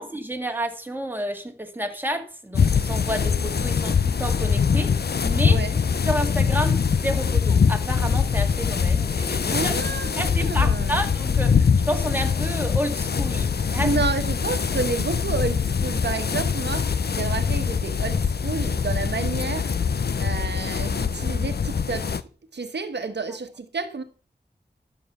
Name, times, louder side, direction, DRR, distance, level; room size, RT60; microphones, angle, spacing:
voice 1, 0.0-4.9 5.2-5.6 6.0-9.7 10.1-14.0, equal, 10° right, 2.0 m, -30 dB
sound 1, 2.5-22.2, left 6 dB, 70° left, 0.6 m, -23 dB
voice 2, 5.4-5.8 9.5-11.0 13.8-19.7 20.2-22.2 22.5-24.0, right 4 dB, 85° right, 1.2 m, -30 dB
12.0 x 7.2 x 5.5 m
wide cardioid pair, 80°, 17 cm